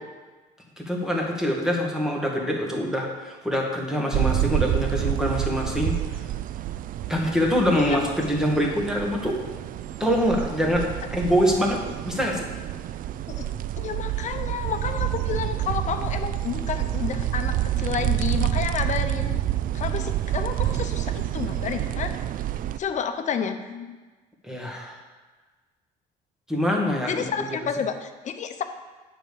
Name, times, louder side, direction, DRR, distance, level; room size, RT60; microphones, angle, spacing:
voice 1, 0.8-6.0 7.1-9.4 10.0-12.4 24.4-25.0 26.5-27.6, equal, 5° right, -1 dB, 2.0 m, -25 dB
sound 1, 4.1-22.8, right 13 dB, 55° right, 0.4 m, -28 dB
voice 2, 13.8-19.5 19.7-22.1 22.8-23.9 27.1-28.6, left 7 dB, 45° left, 7 dB, 0.9 m, -30 dB
9.0 x 5.1 x 7.0 m, 1.3 s
cardioid pair, 110°, 17 cm